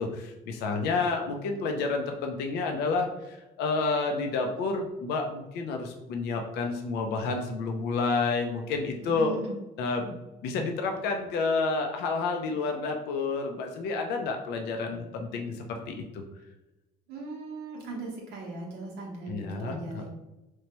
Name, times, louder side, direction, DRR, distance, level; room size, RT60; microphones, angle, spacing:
voice 1, 0.0-9.4 9.8-10.2 10.4-16.2 19.3-20.1, left 4 dB, 80° left, 3 dB, 0.4 m, -30 dB
voice 2, 9.0-9.6 17.1-20.1, right 3 dB, 80° right, -2 dB, 0.7 m, -39 dB
3.0 x 2.1 x 2.8 m, 0.99 s
cardioid pair, 110°, 17 cm